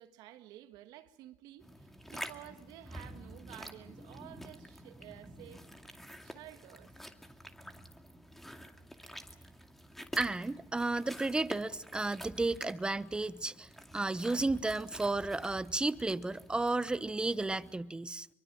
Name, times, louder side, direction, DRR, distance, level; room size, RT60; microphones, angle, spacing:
voice 1, 0.0-5.7 6.2-6.9, right 13 dB, 70° right, 1.7 m, -52 dB
sound 1, 1.6-17.8, equal, 5° left, 2.4 m, -49 dB
voice 2, 10.2-18.3, right 2 dB, 15° right, 0.9 m, -33 dB
24.0 x 24.0 x 7.5 m
supercardioid pair, 85°, 7 cm